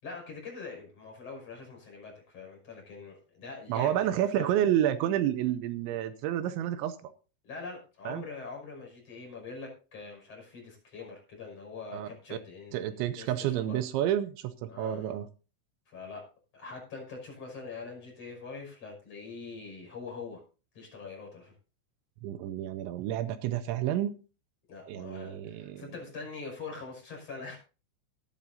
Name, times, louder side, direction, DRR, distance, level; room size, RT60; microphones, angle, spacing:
voice 1, 0.0-4.0 4.4-4.5 7.4-13.8 14.7-15.1 15.9-16.2 16.5-20.4 20.7-21.5 24.7-27.6, left 4 dB, 30° left, 0 dB, 6.5 m, -43 dB
voice 2, 3.7-7.1 8.1-8.2 11.9-12.1 12.7-15.3 22.2-24.2 24.9-25.8, right 11 dB, 80° right, 12 dB, 2.8 m, -30 dB
19.0 x 10.5 x 2.7 m, 0.35 s
omnidirectional pair, 5.8 m